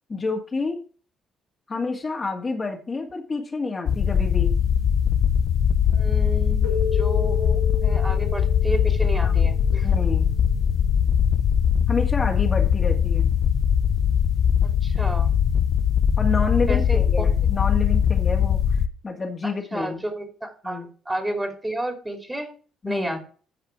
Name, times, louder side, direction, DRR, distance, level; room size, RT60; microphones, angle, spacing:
voice 1, 0.1-0.8 1.7-4.6 9.2-9.4 9.8-10.3 11.9-13.3 16.2-20.0 20.6-20.9 22.8-23.2, left 4 dB, 30° left, 1 dB, 2.2 m, -29 dB
sound 1, 3.9-18.9, left 8 dB, 55° left, 0.8 m, -21 dB
voice 2, 5.9-9.9 14.6-15.3 16.7-17.0 19.4-22.5 22.8-23.2, right 1 dB, 15° right, 5 dB, 3.1 m, -31 dB
Keyboard (musical), 6.6-9.8, left 5 dB, 85° left, 4.2 m, -32 dB
14.0 x 5.0 x 4.7 m, 0.39 s
figure-of-eight pair, 45°, 0 cm